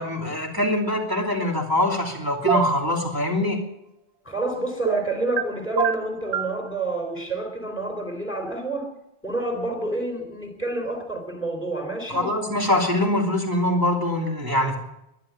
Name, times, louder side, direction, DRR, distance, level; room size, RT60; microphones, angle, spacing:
voice 1, 0.0-3.6 12.1-14.8, left 1 dB, 20° right, 1 dB, 2.9 m, -23 dB
sound 1, 2.5-2.8 4.9-5.4 5.8-6.6, right 8 dB, 65° right, 1.0 m, -23 dB
voice 2, 4.3-8.9 9.2-12.3, right 2 dB, 10° left, 3 dB, 3.6 m, -29 dB
11.5 x 11.5 x 9.4 m, 0.85 s
omnidirectional pair, 1.2 m